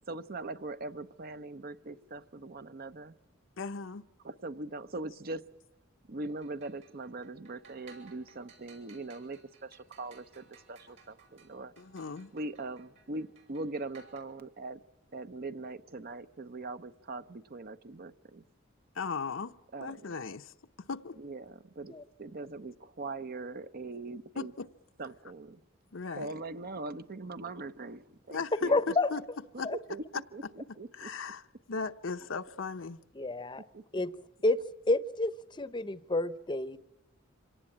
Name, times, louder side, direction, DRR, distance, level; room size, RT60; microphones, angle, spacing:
voice 1, 0.1-3.2 4.2-5.5 6.1-11.7 12.3-14.8 15.1-18.4 19.7-20.1 21.2-24.5 25.0-25.6 26.1-28.9 29.5-30.0 30.3-31.1 33.7-33.8, right 2 dB, 50° right, 0.8 m, -41 dB
voice 2, 3.6-4.0 11.8-12.3 18.9-21.2 24.4-24.7 25.9-26.3 28.3-29.2 29.6-29.7 31.0-31.4 31.7-33.0, left 4 dB, 70° left, 0.8 m, -37 dB
sound 1, 6.2-14.2, right 5 dB, 65° right, 6.7 m, -59 dB
voice 3, 28.7-29.1 29.6-29.8 33.2-33.6 33.9-34.1 34.4-34.6 34.9-35.3 35.6-36.8, left 2 dB, 25° left, 0.8 m, -29 dB
26.0 x 18.0 x 8.7 m
head